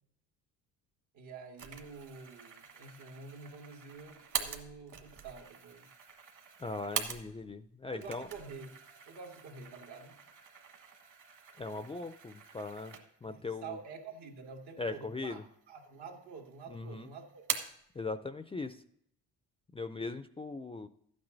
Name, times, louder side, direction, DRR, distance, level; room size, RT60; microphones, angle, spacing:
voice 1, 1.1-5.9 7.9-8.7 9.1-10.2 13.2-15.4 15.7-17.5, right 4 dB, 80° right, 1 dB, 2.3 m, -48 dB
sound 1, 1.6-7.6 7.9-13.4 13.8-13.9 14.7-15.4 15.7-16.5 16.8-17.9, right 6 dB, 50° right, 1.6 m, -43 dB
voice 2, 6.6-8.3 11.6-13.8 14.8-15.4 16.7-17.1 17.9-18.8 19.7-20.9, left 3 dB, 15° left, 10 dB, 0.4 m, -39 dB
12.5 x 8.9 x 3.9 m, 0.70 s
cardioid pair, 110°, 40 cm